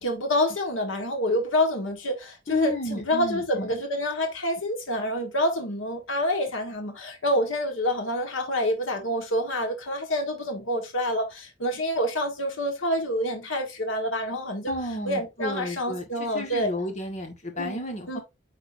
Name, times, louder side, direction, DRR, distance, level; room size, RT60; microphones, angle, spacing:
voice 1, 0.0-14.7 15.1-16.7 17.6-17.8 18.1-18.2, left 1 dB, 80° left, 1.6 m, -27 dB
voice 2, 2.5-3.7 14.7-18.2, equal, 35° left, 1.5 m, -32 dB
9.3 x 3.9 x 2.6 m
head